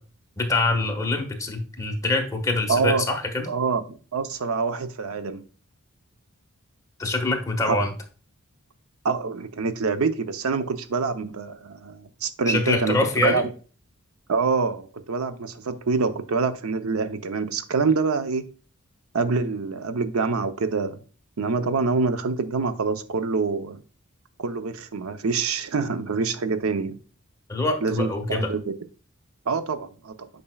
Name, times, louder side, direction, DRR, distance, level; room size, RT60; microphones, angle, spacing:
voice 1, 0.4-3.5 7.0-7.9 12.5-13.4 27.5-28.5, left 2 dB, 15° left, 1.3 m, -24 dB
voice 2, 2.7-3.1 3.5-5.4 7.6-7.8 9.0-13.5 14.3-18.5 19.1-21.0 21.4-23.8 24.4-27.0 27.8-28.7 29.5-30.3, right 4 dB, 75° right, 0.6 m, -26 dB
8.7 x 5.3 x 2.3 m
head